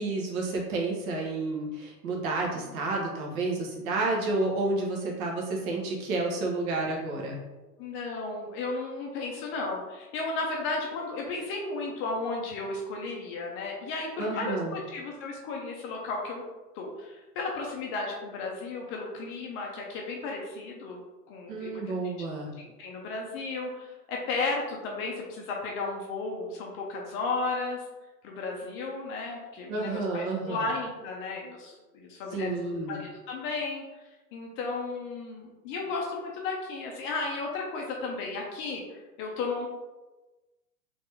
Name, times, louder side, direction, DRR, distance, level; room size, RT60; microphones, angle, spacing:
voice 1, 0.0-7.4 14.2-14.8 21.5-22.5 29.7-30.6 32.3-33.0, right 2 dB, 60° right, -1 dB, 1.4 m, -30 dB
voice 2, 7.8-16.4 16.7-21.0 21.3-21.9 22.6-27.8 28.2-34.0 34.3-39.7, left 3 dB, 25° left, -1 dB, 0.6 m, -34 dB
3.9 x 3.5 x 3.4 m, 1.1 s
hypercardioid pair, 130°, 48 cm